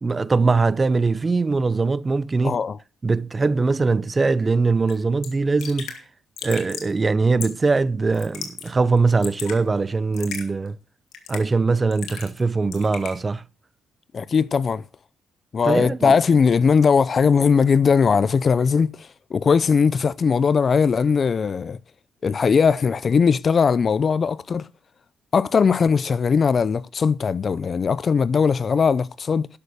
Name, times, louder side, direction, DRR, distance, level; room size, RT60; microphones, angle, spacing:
voice 1, 0.0-2.6 3.0-5.9 6.4-10.8 11.3-13.4 15.7-16.2, right 4 dB, 25° right, 0.6 m, -21 dB
voice 2, 2.4-2.8 14.1-14.8 15.5-18.9 19.3-21.8 22.2-24.7 25.3-29.5, left 5 dB, 45° left, 0.5 m, -19 dB
Raindrop / Drip, 4.9-5.0 5.2-5.3 5.6-6.0 6.4-6.9 7.4-7.7 8.1-8.7 9.0-9.6 10.1-10.5 11.1-11.5 11.9-12.4 12.7-13.2, left 7 dB, 80° left, 2.5 m, -35 dB
11.5 x 6.9 x 6.7 m
cardioid pair, 90°, 0 cm